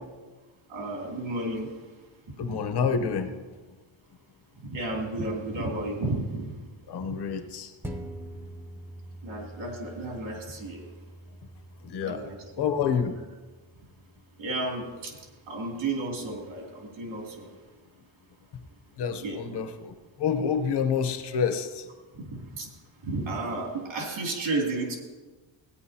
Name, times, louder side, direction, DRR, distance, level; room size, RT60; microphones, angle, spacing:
voice 1, 0.7-1.7 4.6-6.5 7.0-7.1 9.2-10.8 12.0-12.4 14.4-15.2 15.5-17.5 19.2-19.4 22.2-22.7 23.0-25.0, right 2 dB, 80° right, 0 dB, 2.8 m, -32 dB
voice 2, 2.4-3.3 6.9-7.7 11.8-12.2 12.6-13.2 19.0-21.9, left 6 dB, 55° left, 8 dB, 0.9 m, -28 dB
sound 1, 7.8-16.6 17.1-17.2, right 1 dB, 5° right, 0.5 m, -45 dB
16.5 x 9.6 x 2.8 m, 1.3 s
wide cardioid pair, 165°, 47 cm